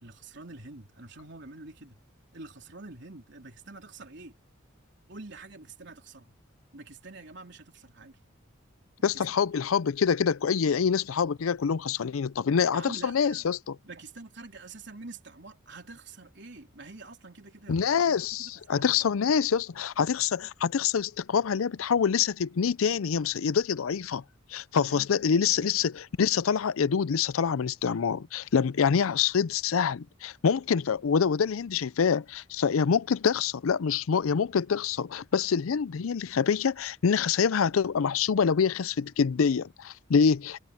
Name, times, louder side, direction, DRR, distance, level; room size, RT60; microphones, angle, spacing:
voice 1, 0.0-2.0 2.3-4.4 5.1-6.3 6.7-8.2 9.0-9.5 12.7-13.5 13.8-19.0 24.8-25.9, right 3 dB, 60° right, 3.7 m, -46 dB
voice 2, 9.0-13.8 17.7-24.2 24.5-40.6, left 6 dB, 85° left, 0.5 m, -26 dB
head